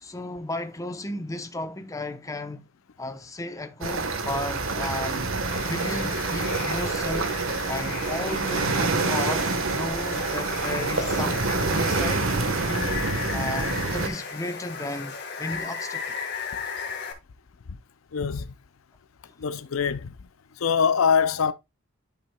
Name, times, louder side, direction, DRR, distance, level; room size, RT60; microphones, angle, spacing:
voice 1, 0.0-2.7 3.0-7.3 7.7-12.3 12.6-16.2, left 2 dB, 15° left, 0.9 m, -34 dB
sound 1, 3.8-14.1, right 3 dB, 80° right, 1.4 m, -27 dB
Water, 5.5-17.1, left 5 dB, 55° left, 1.9 m, -35 dB
voice 2, 18.1-18.5 19.4-20.1 20.6-21.5, left 6 dB, 80° left, 0.5 m, -23 dB
11.0 x 5.9 x 2.3 m
head